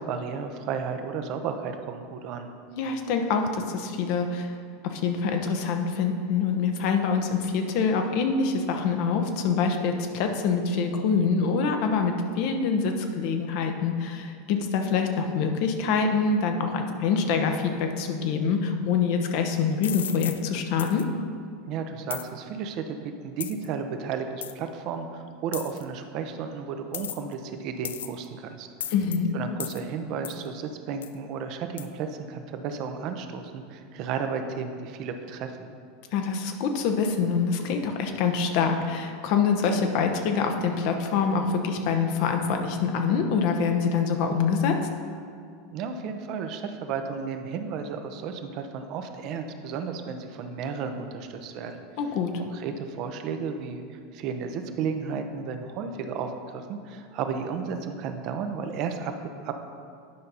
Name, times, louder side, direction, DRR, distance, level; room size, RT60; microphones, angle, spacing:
voice 1, 0.0-2.5 21.7-28.9 29.3-35.6 45.7-51.8 52.4-59.5, right 6 dB, 50° right, 6 dB, 0.7 m, -33 dB
voice 2, 2.7-4.6 4.8-21.1 28.9-29.3 36.1-44.8 52.0-52.3, left 5 dB, 55° left, 5 dB, 0.8 m, -25 dB
sound 1, 19.8-20.4 20.8-21.0 22.1-22.3 23.4-23.6 24.4-24.5 25.5-25.8 26.9-27.3 27.8-28.2 28.8-29.2 29.6-29.8 30.2-30.4 31.0-31.1 31.8-31.9, left 9 dB, 75° left, 0.3 m, -35 dB
9.8 x 5.4 x 4.0 m, 2.2 s
hypercardioid pair, 85°, 0 cm